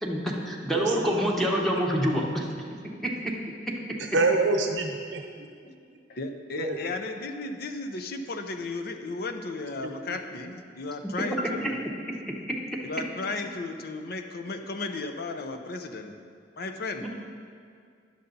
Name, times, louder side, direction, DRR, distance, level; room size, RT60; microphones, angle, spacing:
voice 1, 0.0-2.5 3.0-3.1 17.0-17.1, equal, ahead, -2 dB, 1.0 m, -26 dB
voice 2, 0.7-1.2 4.0-5.5 6.6-6.8 9.8-9.9, right 3 dB, 80° right, 3 dB, 0.9 m, -27 dB
voice 3, 6.1-11.9 12.8-16.2 16.6-17.1, left 3 dB, 55° left, 6 dB, 0.6 m, -35 dB
10.0 x 6.8 x 3.9 m, 2.2 s
head